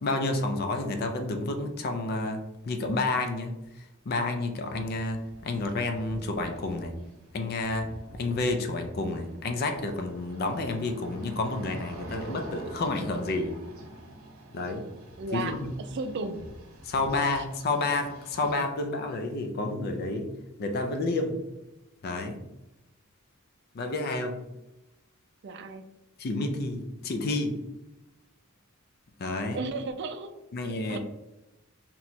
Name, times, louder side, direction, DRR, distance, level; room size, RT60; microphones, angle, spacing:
voice 1, 0.0-6.9 7.3-7.9 8.2-13.5 14.5-14.9 15.3-15.8 16.8-20.3 20.6-21.4 22.0-22.4 23.7-24.4 26.2-27.5 29.2-29.6 30.5-31.0, left 2 dB, 50° left, 5 dB, 0.4 m, -30 dB
sound 1, 4.6-18.5, right 1 dB, 85° right, 0.8 m, -47 dB
voice 2, 15.2-15.6 15.9-16.5 17.4-17.5 25.4-25.8 29.3-30.3 30.9-31.0, right 3 dB, 55° right, 8 dB, 0.4 m, -34 dB
2.8 x 2.3 x 4.0 m, 0.95 s
head